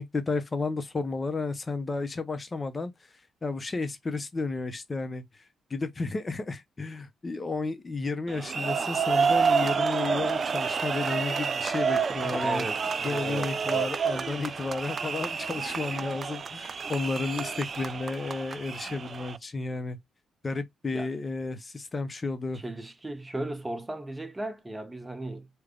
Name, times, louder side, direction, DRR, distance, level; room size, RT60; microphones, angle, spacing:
voice 1, 0.0-2.9 3.4-5.4 5.7-12.7 13.0-20.0 20.4-22.6, left 3 dB, 25° left, 0.7 m, -32 dB
sound 1, 8.3-19.4, right 5 dB, 40° right, 0.4 m, -29 dB
voice 2, 12.1-13.9 20.9-21.1 22.5-25.5, right 1 dB, 15° right, 0.9 m, -36 dB
3.3 x 2.2 x 3.7 m
cardioid pair, 90°, 0 cm